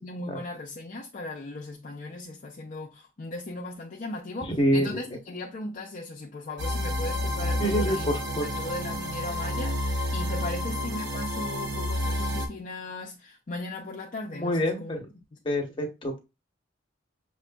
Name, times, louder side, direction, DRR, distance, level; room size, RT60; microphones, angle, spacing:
voice 1, 0.0-8.1 8.4-15.0, left 2 dB, 40° left, 0.5 m, -37 dB
voice 2, 4.5-5.0 7.6-8.5 14.3-15.0 15.4-16.2, equal, 25° left, 0.9 m, -26 dB
sound 1, 6.6-12.5, left 1 dB, 70° right, 1.0 m, -30 dB
6.2 x 2.5 x 2.2 m
head